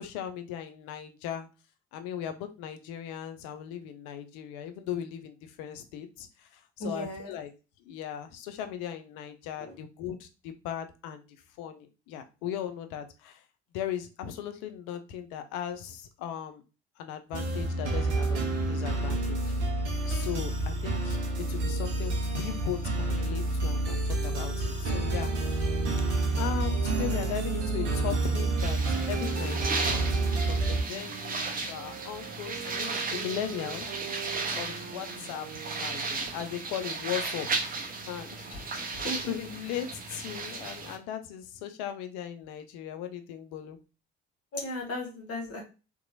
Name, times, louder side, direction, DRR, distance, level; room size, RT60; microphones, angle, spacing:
voice 1, 0.0-1.5 1.9-6.3 6.8-7.5 7.9-11.2 11.6-13.3 13.7-16.6 17.0-18.4 18.7-19.4 20.1-21.2 21.5-24.0 24.2-25.3 26.4-28.8 29.1-33.8 34.5-35.5 35.8-37.5 38.1-38.3 39.3-43.8, left 10 dB, 60° left, 8 dB, 0.5 m, -37 dB
voice 2, 6.8-7.4 9.6-9.8 38.5-39.3 44.5-45.6, left 1 dB, 45° left, 1 dB, 1.0 m, -36 dB
sound 1, 17.3-30.8, right 2 dB, 80° right, 0.6 m, -29 dB
sound 2, 25.2-30.6 31.1-35.9, right 9 dB, 60° right, 1.0 m, -44 dB
sound 3, 28.6-41.0, right 4 dB, 25° right, 0.6 m, -35 dB
2.8 x 2.2 x 2.6 m, 0.31 s
figure-of-eight pair, 50°, 34 cm